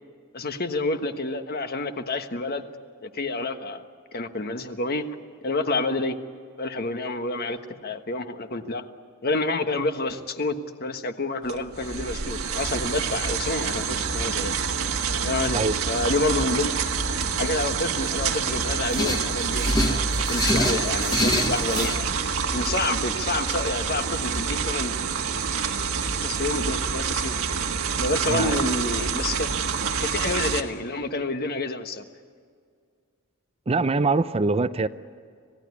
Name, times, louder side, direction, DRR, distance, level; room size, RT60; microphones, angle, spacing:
voice 1, 0.3-2.6 3.0-3.8 4.1-5.1 5.4-6.2 6.6-8.8 9.2-14.5 15.2-15.6 15.9-16.7 17.4-22.1 22.5-24.9 26.2-27.4 28.0-29.5 29.8-32.0, left 2 dB, 45° left, 1.4 m, -28 dB
sound 1, 11.5-30.6, right 5 dB, 70° right, 1.6 m, -27 dB
sound 2, 12.1-31.2, right 1 dB, 80° left, 5.6 m, -52 dB
sound 3, 18.9-22.0, left 1 dB, 20° left, 1.1 m, -26 dB
voice 2, 28.3-28.7 33.7-34.9, right 3 dB, 30° right, 0.5 m, -23 dB
26.5 x 17.0 x 9.7 m
head